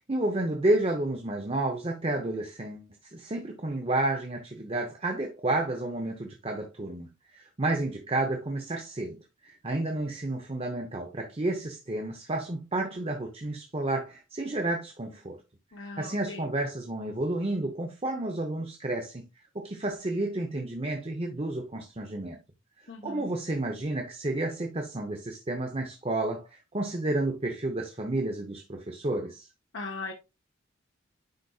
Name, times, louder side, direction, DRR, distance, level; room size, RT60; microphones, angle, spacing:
voice 1, 0.1-15.4 16.0-19.3 19.5-22.4 23.0-29.5, right 2 dB, 30° right, 0.8 m, -31 dB
voice 2, 15.7-16.5 22.9-23.3 29.7-30.1, left 3 dB, 70° left, 1.1 m, -39 dB
10.5 x 4.1 x 2.3 m
head